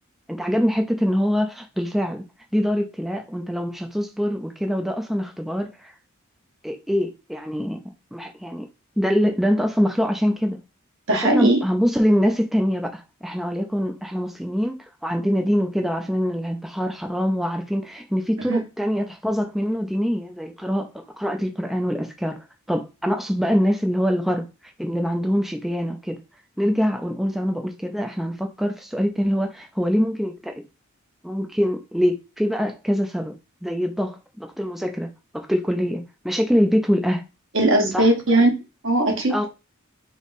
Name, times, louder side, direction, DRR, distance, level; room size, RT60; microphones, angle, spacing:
voice 1, 0.3-2.2 2.5-5.9 6.6-7.8 8.1-8.6 9.0-10.6 11.1-24.5 24.8-26.2 26.6-30.5 31.2-33.3 33.6-37.2 37.9-38.1 39.3-39.4, equal, ahead, 0.4 m, -24 dB
voice 2, 11.1-11.6 18.4-18.6 37.5-38.5 38.8-39.5, right 1 dB, 65° right, 1.3 m, -19 dB
3.5 x 3.0 x 4.0 m
head